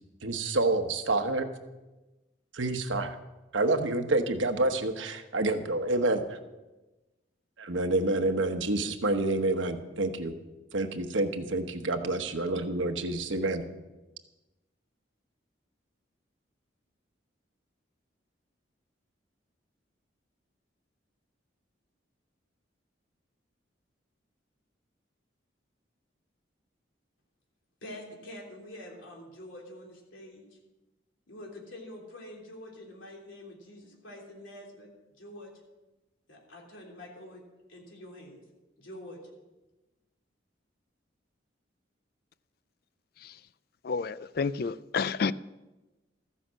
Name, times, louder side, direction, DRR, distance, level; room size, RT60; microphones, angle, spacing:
voice 1, 0.2-1.5 2.5-3.2 3.5-6.4 7.6-10.3 10.7-13.6, right 2 dB, 80° right, 1.1 m, -28 dB
voice 2, 27.8-30.4 31.3-34.9 35.2-35.5 36.3-37.4 37.7-38.4 38.8-39.2, left 1 dB, 85° left, 3.4 m, -46 dB
voice 3, 43.8-45.3, left 5 dB, 50° left, 0.4 m, -30 dB
14.5 x 10.0 x 6.3 m
head